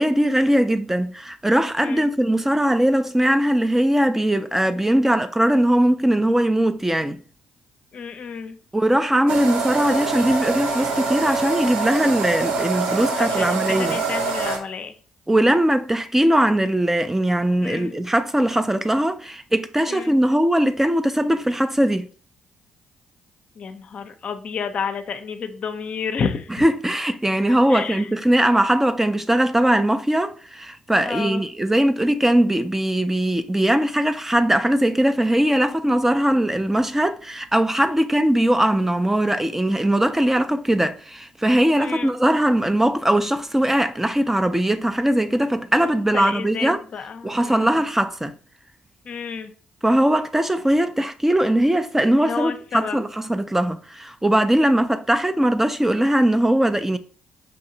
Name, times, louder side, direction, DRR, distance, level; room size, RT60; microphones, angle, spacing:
voice 1, 0.0-7.2 8.7-14.0 15.3-22.1 26.6-46.8 47.2-48.3 49.8-57.0, right 1 dB, 10° right, 0.4 m, -20 dB
voice 2, 7.9-8.6 13.2-14.9 17.6-17.9 19.9-20.2 23.6-26.5 27.5-28.1 31.0-31.4 41.8-42.1 46.1-47.8 49.0-49.5 52.2-53.0, left 6 dB, 55° left, 0.5 m, -30 dB
sound 1, 9.3-14.6, right 4 dB, 75° right, 0.7 m, -25 dB
5.4 x 2.7 x 2.6 m
hypercardioid pair, 50°, 3 cm